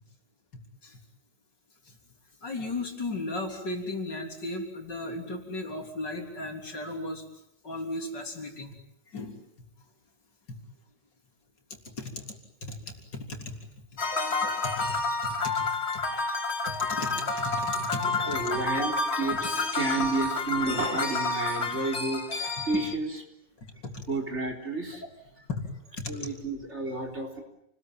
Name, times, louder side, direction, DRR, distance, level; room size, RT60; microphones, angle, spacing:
voice 1, 2.4-7.2 7.6-8.8 9.1-9.4 10.5-10.6 11.8-12.3 12.6-13.8 14.4-15.7 15.9-16.1 16.7-18.4 18.8-18.9 23.6-24.1 25.5-25.6 26.0-26.1, left 2 dB, 65° left, 4 dB, 4.2 m, -36 dB
sound 1, 14.0-22.9, left 3 dB, 35° left, 2.6 m, -29 dB
voice 2, 18.0-23.2 24.1-25.0 25.4-25.5 26.1-27.4, right 2 dB, 35° right, 2 dB, 4.4 m, -31 dB
29.5 x 20.5 x 9.3 m, 0.78 s
omnidirectional pair, 2.1 m